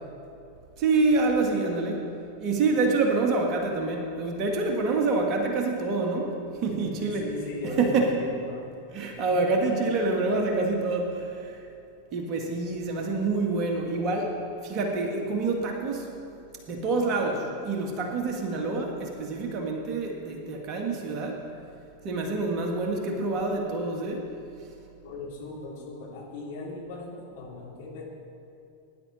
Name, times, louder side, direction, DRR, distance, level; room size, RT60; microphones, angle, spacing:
voice 1, 0.8-2.0 2.4-6.3 6.6-7.3 7.6-8.1 8.9-11.6 12.1-16.1 16.7-21.4 22.0-24.3, right 3 dB, 35° right, 1 dB, 2.0 m, -27 dB
voice 2, 6.7-8.7 9.3-9.5 25.0-28.0, left 2 dB, 50° left, -4 dB, 3.7 m, -38 dB
18.5 x 10.5 x 4.4 m, 2.6 s
figure-of-eight pair, 90°, 0 cm